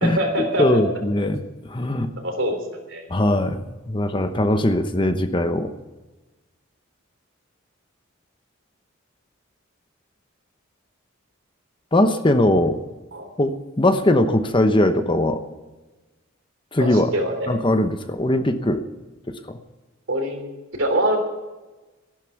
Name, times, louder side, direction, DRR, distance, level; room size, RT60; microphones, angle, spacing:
voice 1, 0.0-0.8 2.2-3.0 13.1-13.3 16.8-17.6 20.1-20.5 20.8-21.2, right 1 dB, 65° right, 4 dB, 3.4 m, -24 dB
voice 2, 0.6-2.1 3.1-5.7 11.9-12.8 13.4-15.4 16.7-17.1 17.5-18.8 19.5-19.6, left 1 dB, 25° left, 8 dB, 0.9 m, -20 dB
14.5 x 11.5 x 5.9 m, 1.1 s
head